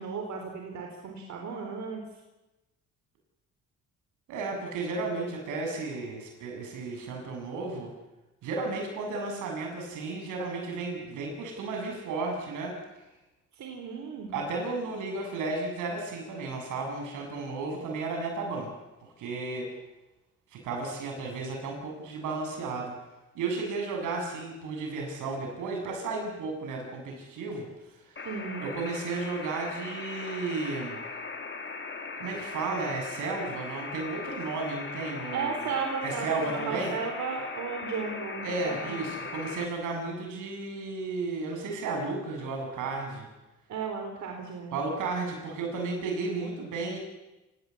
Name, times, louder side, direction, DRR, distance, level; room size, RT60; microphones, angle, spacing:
voice 1, 0.0-2.0 13.5-14.3 28.2-28.7 35.3-36.3 36.7-38.5 38.8-39.0 43.7-44.8, right 5 dB, 65° right, 2 dB, 4.1 m, -34 dB
voice 2, 4.3-7.9 8.4-12.8 14.3-18.7 19.0-19.7 20.5-22.9 23.3-28.3 28.6-31.0 32.2-35.5 36.0-36.9 38.4-43.3 44.7-47.0, right 3 dB, 90° right, 2 dB, 7.7 m, -33 dB
sound 1, 28.2-39.7, left 4 dB, 40° left, 2.9 m, -39 dB
28.0 x 17.0 x 8.5 m, 1.0 s
cardioid pair, 90°, 30 cm